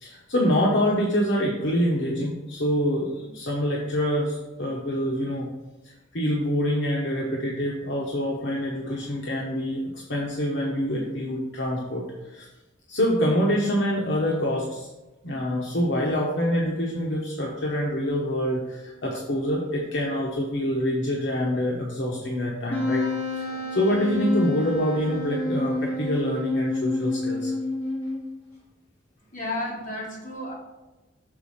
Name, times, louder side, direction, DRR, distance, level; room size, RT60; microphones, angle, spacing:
voice 1, 0.0-5.5 6.1-9.8 10.1-12.4 12.9-14.9 15.2-27.5, equal, 65° left, -3 dB, 1.0 m, -26 dB
Wind instrument woodwind instrument, 22.7-28.4, left 2 dB, 15° left, 1.9 m, -29 dB
voice 2, 29.3-30.5, left 1 dB, 40° left, -5 dB, 2.1 m, -32 dB
6.9 x 4.1 x 5.7 m, 1.1 s
head